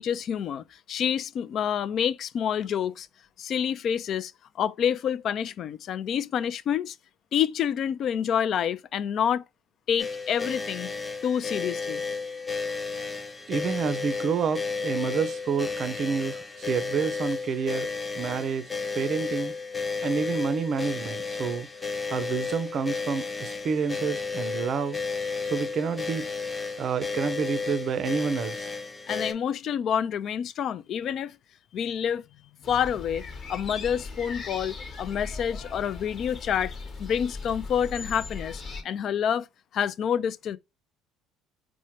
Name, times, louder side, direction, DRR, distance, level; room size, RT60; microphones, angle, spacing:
voice 1, 0.0-3.1 3.4-7.0 7.3-9.4 9.9-10.9 11.2-12.0 29.1-31.4 31.7-32.2 32.7-33.2 33.5-36.7 37.0-39.5 39.7-40.6, left 8 dB, 55° left, 0.3 m, -28 dB
sound 1, 10.0-29.3, left 4 dB, 15° left, 0.8 m, -33 dB
voice 2, 13.5-17.9 18.2-18.7 18.9-19.5 20.0-21.7 22.1-25.0 25.4-26.3 26.8-28.7, right 6 dB, 50° right, 0.5 m, -29 dB
sound 2, 32.6-38.8, left 4 dB, 40° left, 1.0 m, -38 dB
4.3 x 2.1 x 2.9 m
supercardioid pair, 80°, 0 cm